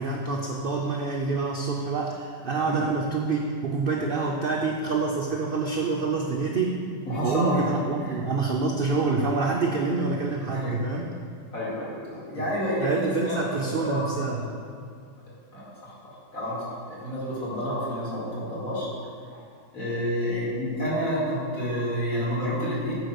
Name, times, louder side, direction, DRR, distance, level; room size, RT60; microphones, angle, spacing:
voice 1, 0.0-6.8 7.2-11.1 12.4-12.5 12.8-14.4, right 3 dB, 80° right, 0 dB, 0.5 m, -27 dB
voice 2, 7.1-7.7 8.0-8.2 10.5-10.8 11.5-14.0 14.4-14.5 15.5-16.0 16.3-18.9 19.3-19.4 19.7-22.9, equal, 55° left, -8 dB, 2.8 m, -29 dB
8.8 x 4.7 x 5.8 m, 2.2 s
omnidirectional pair, 1.8 m